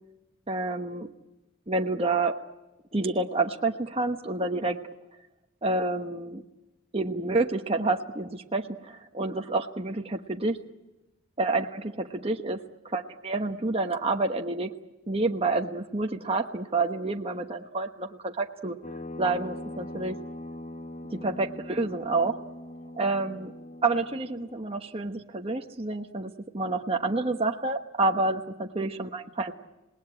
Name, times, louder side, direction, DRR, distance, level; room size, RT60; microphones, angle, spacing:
voice 1, 0.5-1.1 1.7-2.4 2.9-4.8 5.6-6.4 6.9-10.6 11.4-12.6 12.8-14.7 15.1-18.8 19.2-20.2 21.1-22.4 22.9-23.5 23.8-29.5, right 3 dB, 30° right, 3 dB, 1.1 m, -28 dB
sound 1, 18.8-24.6, left 1 dB, 35° left, 1.1 m, -41 dB
27.5 x 19.5 x 10.0 m, 1.0 s
head